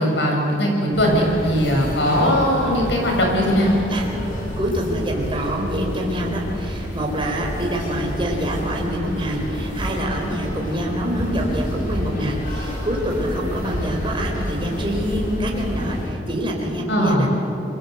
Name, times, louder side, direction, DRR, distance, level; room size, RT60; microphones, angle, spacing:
voice 1, 0.0-3.7 16.9-17.3, equal, 80° left, 0 dB, 7.2 m, -19 dB
sound 1, 0.9-16.1, equal, 50° left, 6.4 m, -29 dB
voice 2, 4.6-17.3, equal, 30° right, 0 dB, 4.3 m, -26 dB
28.5 x 23.0 x 8.0 m, 2.9 s
head